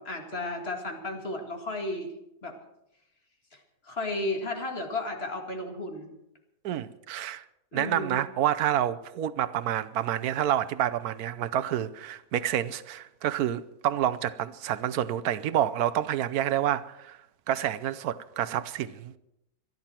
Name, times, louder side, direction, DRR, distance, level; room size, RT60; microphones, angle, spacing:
voice 1, 0.0-2.1 2.4-2.6 3.5-6.1 7.7-8.2, left 2 dB, 45° left, 2.3 m, -34 dB
voice 2, 6.6-7.4 7.7-17.2 17.5-19.2, right 11 dB, 85° right, 1.2 m, -28 dB
26.0 x 10.5 x 4.4 m
omnidirectional pair, 1.5 m